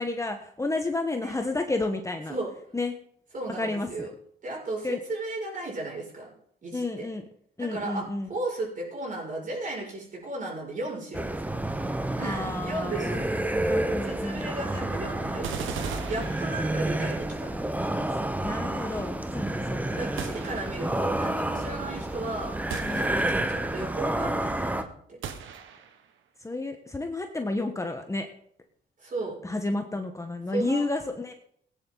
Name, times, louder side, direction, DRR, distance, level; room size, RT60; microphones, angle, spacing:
voice 1, 0.0-2.3 2.7-2.9 3.6-4.1 4.8-5.0 6.7-7.2 7.6-8.3 12.2-13.2 13.6-14.5 18.1-20.1 22.8-23.4 26.4-28.3 29.4-31.3, left 2 dB, 15° left, 5 dB, 1.3 m, -31 dB
voice 2, 3.3-4.1 4.4-6.3 6.6-7.1 7.6-11.5 12.2-13.4 14.0-17.5 20.0-22.6 22.9-25.2 29.0-29.4 30.5-30.8, right 2 dB, 40° right, -2 dB, 6.8 m, -35 dB
sound 1, 11.1-24.8, right 1 dB, 10° right, 1.1 m, -30 dB
sound 2, 15.4-17.1 20.2-21.1 22.7-23.6 25.2-26.1, right 8 dB, 80° right, 1.6 m, -39 dB
18.0 x 9.9 x 4.0 m, 0.64 s
cardioid pair, 90°, 20 cm